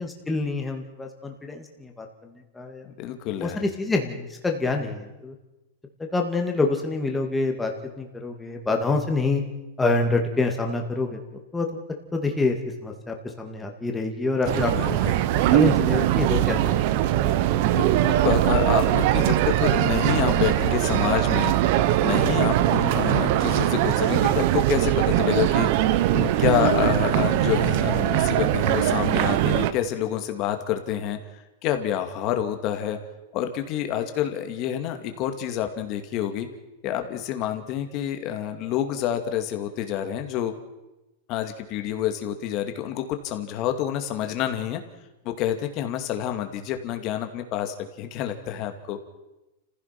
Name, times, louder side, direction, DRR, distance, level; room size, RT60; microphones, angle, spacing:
voice 1, 0.0-2.1 2.6-2.9 3.4-5.3 6.0-7.7 8.0-9.4 9.8-11.2 11.5-11.7 12.1-12.6 12.8-15.0 15.5-16.8, left 3 dB, 10° left, 3 dB, 2.3 m, -26 dB
voice 2, 2.8-3.6 14.7-15.3 17.7-21.6 22.0-25.7 26.1-31.2 31.6-33.0 33.3-36.5 36.8-40.5 41.3-44.8 45.2-49.0, left 11 dB, 35° left, 6 dB, 2.3 m, -28 dB
sound 1, 14.4-29.7, right 13 dB, 45° right, 1.0 m, -21 dB
29.5 x 16.0 x 6.0 m, 1.0 s
supercardioid pair, 160°, 0 cm